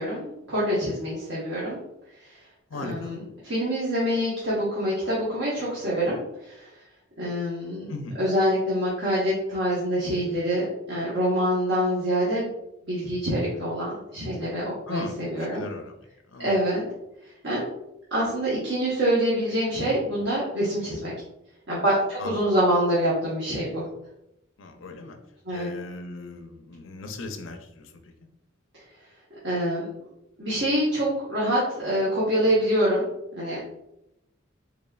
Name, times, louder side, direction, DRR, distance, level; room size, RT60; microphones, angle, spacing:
voice 1, 0.0-1.8 2.2-2.4 2.8-6.7 7.2-7.9 8.2-12.5 12.9-15.7 16.4-16.8 17.4-17.6 18.1-21.1 21.7-23.9 25.4-25.7 29.4-30.1 30.4-33.1 33.4-33.6, equal, 70° right, -8 dB, 1.2 m, -25 dB
voice 2, 2.7-3.2 7.9-8.2 14.9-16.6 22.2-22.4 24.6-25.2 25.5-28.1, left 2 dB, 85° left, 5 dB, 0.6 m, -38 dB
4.1 x 3.4 x 2.3 m, 0.86 s
head